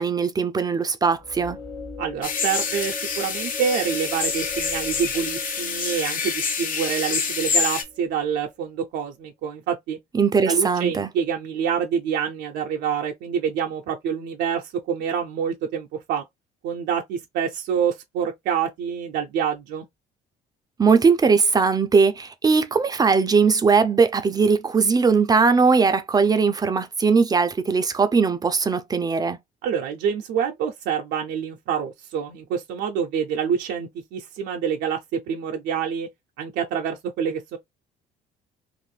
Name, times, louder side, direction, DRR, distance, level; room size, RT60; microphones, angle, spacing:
voice 1, 0.0-1.6 10.1-11.1 20.8-29.4, right 5 dB, 25° right, 0.4 m, -19 dB
sound 1, 1.1-8.5, left 2 dB, 15° left, 0.9 m, -39 dB
voice 2, 2.0-10.0 10.5-16.2 16.6-19.9 29.6-36.1 36.4-37.6, right 7 dB, 80° right, 0.5 m, -27 dB
sound 2, 2.2-7.8, left 6 dB, 55° left, 0.9 m, -27 dB
2.5 x 2.4 x 3.1 m
cardioid pair, 110°, 17 cm